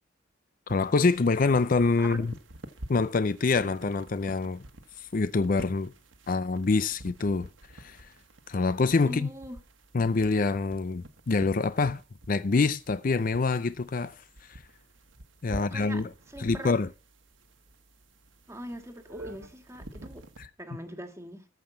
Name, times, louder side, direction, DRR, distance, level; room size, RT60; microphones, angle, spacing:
voice 1, 0.7-2.3 2.9-4.6 5.0-5.9 6.3-7.5 7.7-8.1 8.5-9.3 9.9-12.0 12.3-14.6 15.4-16.1 16.4-16.9 20.4-20.5, left 3 dB, 45° left, 0.5 m, -26 dB
sound 1, 0.7-20.5, right 1 dB, 80° right, 1.5 m, -48 dB
voice 2, 9.0-9.6 15.5-16.0 16.3-16.8 18.5-20.3 20.6-21.5, equal, 15° right, 1.7 m, -41 dB
14.0 x 5.6 x 7.2 m
head